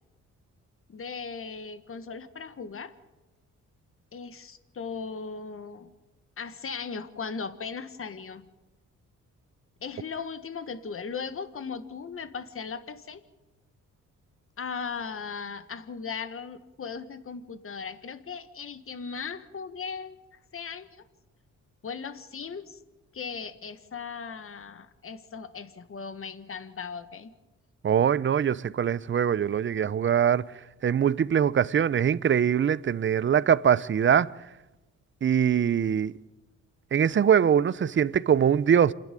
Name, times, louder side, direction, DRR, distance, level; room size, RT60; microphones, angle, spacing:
voice 1, 0.9-2.9 4.1-5.9 6.4-8.4 9.8-13.2 14.6-20.2 20.5-20.9 21.8-22.8 23.1-27.3, left 5 dB, 45° left, 1.5 m, -37 dB
voice 2, 27.8-30.4 30.8-34.3 35.2-36.1 36.9-38.9, right 8 dB, 40° right, 0.6 m, -22 dB
28.0 x 10.5 x 9.2 m
cardioid pair, 85°, 31 cm